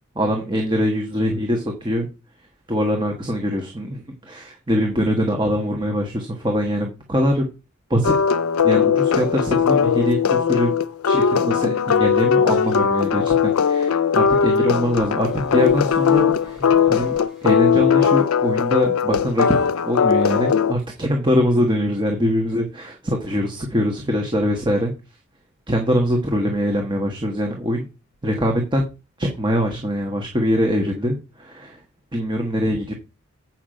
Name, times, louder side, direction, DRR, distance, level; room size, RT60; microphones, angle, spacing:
voice 1, 0.1-2.1 2.7-7.5 7.9-8.1 8.6-10.7 11.0-16.6 16.9-19.6 19.8-24.9 25.7-27.8 28.2-28.9 29.2-31.8 32.1-32.9, equal, 20° right, 2 dB, 1.4 m, -23 dB
sound 1, 8.0-20.7, left 7 dB, 80° left, 0.5 m, -19 dB
sound 2, 15.0-17.7, equal, ahead, 2.4 m, -40 dB
8.4 x 6.0 x 5.2 m, 0.29 s
head